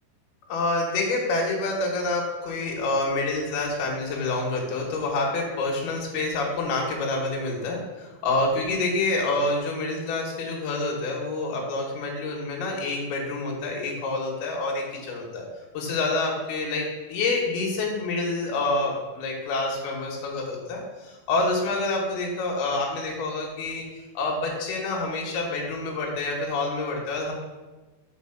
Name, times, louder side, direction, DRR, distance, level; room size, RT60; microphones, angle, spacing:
voice 1, 0.5-15.5 15.7-23.8 24.1-27.3, left 2 dB, 65° left, -1 dB, 2.9 m, -27 dB
5.7 x 5.3 x 5.8 m, 1.2 s
omnidirectional pair, 5.5 m